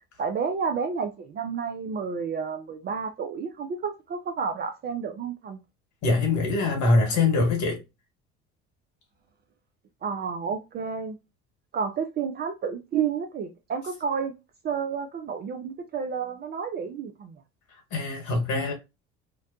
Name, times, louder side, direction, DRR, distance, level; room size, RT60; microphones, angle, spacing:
voice 1, 0.2-5.6 10.0-11.2 11.7-14.3 14.6-17.4, right 6 dB, 30° right, 0.4 m, -30 dB
voice 2, 6.0-7.8 17.9-18.7, left 3 dB, 50° left, 1.2 m, -23 dB
2.5 x 2.1 x 2.6 m
figure-of-eight pair, 60°, 36 cm